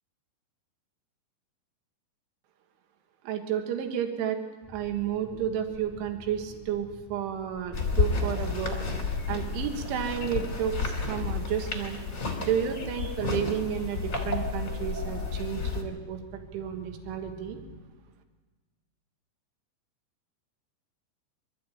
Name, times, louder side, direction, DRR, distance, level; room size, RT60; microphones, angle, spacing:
voice 1, 3.2-4.4 4.7-8.8 9.3-12.0 12.4-16.2 16.5-17.6, right 9 dB, 75° right, 5 dB, 3.9 m, -31 dB
sound 1, 4.6-17.8, left 3 dB, 10° left, 0.9 m, -50 dB
sound 2, 7.7-15.8, left 4 dB, 25° left, 1.8 m, -31 dB
23.5 x 13.5 x 8.7 m, 1.3 s
omnidirectional pair, 5.8 m